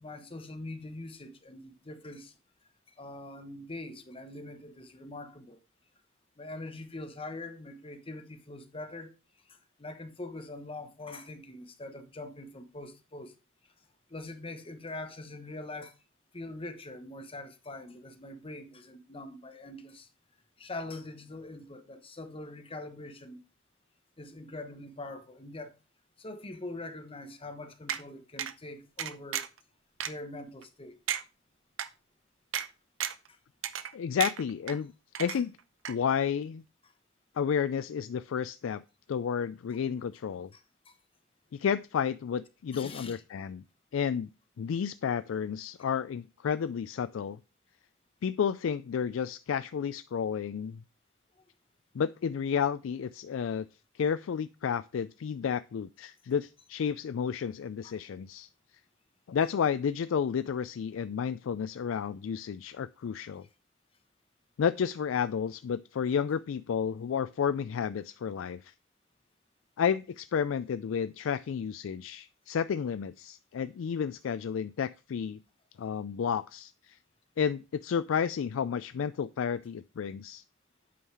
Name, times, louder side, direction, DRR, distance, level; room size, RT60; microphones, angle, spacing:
voice 1, 0.0-2.4 2.9-5.6 6.4-9.1 9.5-13.3 14.1-16.0 16.3-20.1 20.6-23.4 24.2-25.7 26.2-29.4 30.0-31.0 33.3-33.4 35.3-35.4 36.8-36.9 40.5-40.9 42.7-43.2 51.4-51.5 57.8-57.9, left 2 dB, 30° left, 1.1 m, -43 dB
sound 1, 27.9-28.0 28.4-28.5 29.0-29.6 30.0-30.1 30.6-30.7 31.1-31.2 31.8-31.9 32.5-32.7 33.0-33.3 33.6-33.9 34.2-34.8 35.1-35.6 35.8-35.9, right 9 dB, 75° right, 0.7 m, -33 dB
voice 2, 33.9-34.9 35.2-35.5 35.9-36.6 37.4-38.8 39.1-40.5 41.5-43.6 43.9-44.3 44.6-47.4 48.2-50.8 51.9-53.7 53.9-58.5 59.3-63.5 64.6-68.7 69.8-75.4 75.8-77.0 77.4-80.4, left 7 dB, 75° left, 0.3 m, -31 dB
8.5 x 5.5 x 4.7 m
head